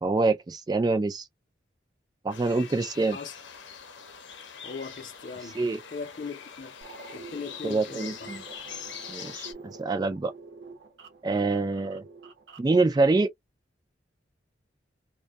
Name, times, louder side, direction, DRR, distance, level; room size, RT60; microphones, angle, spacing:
voice 1, 0.0-1.3 2.2-3.2 5.6-5.8 7.6-8.4 9.1-10.3 11.2-12.0 12.6-13.3, right 3 dB, 20° right, 0.3 m, -25 dB
sound 1, 2.3-9.5, left 7 dB, 80° left, 0.7 m, -43 dB
voice 2, 4.6-5.6 5.9-6.7 7.1-8.3, left 5 dB, 45° left, 0.5 m, -39 dB
sound 2, 6.8-12.7, right 4 dB, 70° right, 0.8 m, -48 dB
2.5 x 2.1 x 2.2 m
head